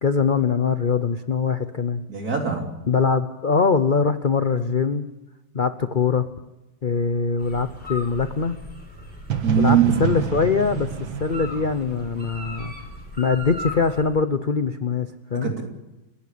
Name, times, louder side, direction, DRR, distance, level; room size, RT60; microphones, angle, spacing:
voice 1, 0.0-2.0 2.9-5.1 5.5-6.3 6.8-8.6 9.6-10.9 11.2-12.7 13.2-15.5, left 5 dB, 70° left, 10 dB, 0.4 m, -22 dB
voice 2, 2.1-2.7 9.4-10.1 15.4-15.6, right 8 dB, 50° right, 2 dB, 3.6 m, -21 dB
sound 1, 7.4-14.0, left 1 dB, 5° left, 5.6 m, -38 dB
sound 2, 9.3-13.2, right 8 dB, 80° right, 2.3 m, -29 dB
30.0 x 11.5 x 8.6 m, 1.0 s
omnidirectional pair, 2.1 m